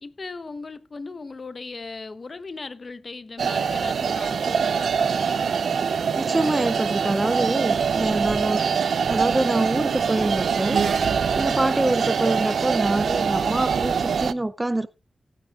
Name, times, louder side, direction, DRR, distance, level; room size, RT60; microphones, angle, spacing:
voice 1, 0.0-5.6, left 3 dB, 45° left, 1.0 m, -38 dB
sound 1, 3.4-14.3, right 6 dB, 80° right, 0.6 m, -24 dB
voice 2, 6.2-8.6 9.1-10.8 11.4-14.9, right 1 dB, 15° right, 0.6 m, -25 dB
18.5 x 9.2 x 2.4 m
wide cardioid pair, 95°, 0 cm